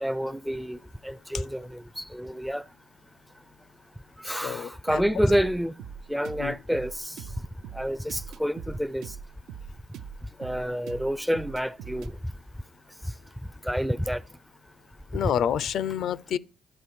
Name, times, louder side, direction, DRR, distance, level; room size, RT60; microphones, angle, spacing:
voice 1, 0.0-2.6 4.2-5.7 6.1-7.2 7.7-9.1 10.4-12.2 13.6-14.2, equal, ahead, 0.4 m, -28 dB
voice 2, 4.4-5.0 6.4-6.6 15.1-16.4, left 9 dB, 70° left, 0.4 m, -28 dB
sound 1, 4.9-12.1, right 7 dB, 85° right, 0.6 m, -42 dB
12.0 x 5.3 x 4.7 m
cardioid pair, 90°, 0 cm